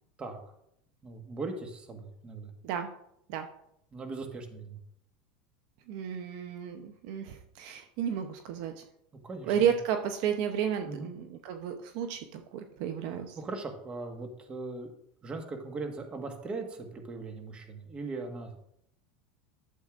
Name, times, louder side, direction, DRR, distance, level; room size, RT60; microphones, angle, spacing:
voice 1, 1.0-2.5 3.9-4.8 9.2-9.7 10.8-11.1 13.1-14.9 15.2-18.6, right 3 dB, 25° right, 4 dB, 1.5 m, -39 dB
voice 2, 5.9-8.8 9.5-13.4, right 8 dB, 65° right, 7 dB, 0.8 m, -32 dB
12.0 x 7.7 x 2.5 m, 0.75 s
supercardioid pair, 120°, 4 cm